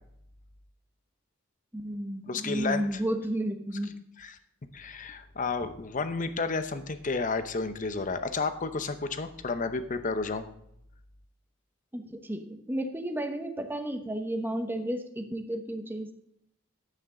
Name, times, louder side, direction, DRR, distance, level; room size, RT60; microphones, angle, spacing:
voice 1, 1.7-3.9 11.9-16.1, right 1 dB, 10° right, 5 dB, 0.9 m, -32 dB
voice 2, 2.3-3.0 4.2-4.4 4.7-10.4, left 4 dB, 40° left, 10 dB, 0.8 m, -31 dB
10.5 x 8.6 x 3.8 m, 0.76 s
head